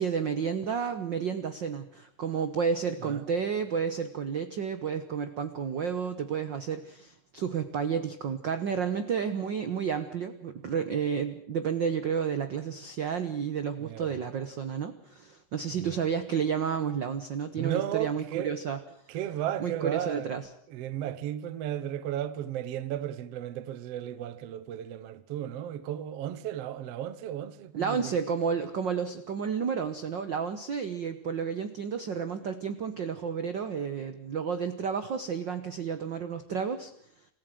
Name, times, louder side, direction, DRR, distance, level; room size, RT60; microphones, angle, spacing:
voice 1, 0.0-18.8 19.6-20.5 27.7-36.9, right 6 dB, 80° right, 1.0 m, -31 dB
voice 2, 13.8-14.1 17.6-18.6 19.1-20.3 20.7-28.1, right 11 dB, 65° right, 1.8 m, -34 dB
27.0 x 15.0 x 7.7 m
omnidirectional pair, 3.8 m